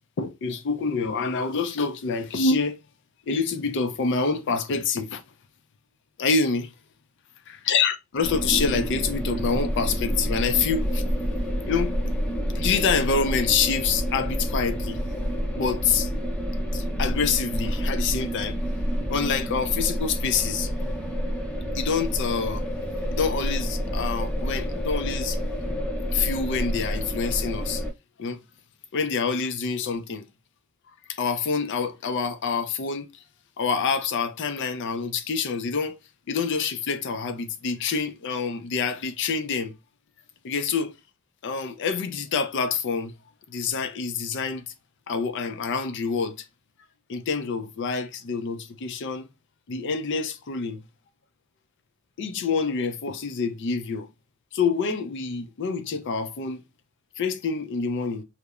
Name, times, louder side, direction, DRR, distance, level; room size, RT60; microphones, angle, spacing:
voice 1, 0.2-2.8 3.3-5.2 6.2-6.7 7.7-11.0 11.7-12.1 12.5-15.0 15.5-16.1 16.7-18.6 19.1-20.7 21.7-22.6 23.1-25.4 26.1-27.8 28.2-28.4 28.9-30.2 31.1-33.1 33.6-36.0 36.3-39.7 40.4-40.9 41.4-43.1 43.5-44.6 45.1-46.4 47.1-49.3 49.7-50.8 52.2-54.1 54.5-56.6 57.2-58.2, left 5 dB, 55° left, 0.4 m, -26 dB
sound 1, 8.2-27.9, equal, 5° left, 0.6 m, -28 dB
2.9 x 2.0 x 2.3 m
head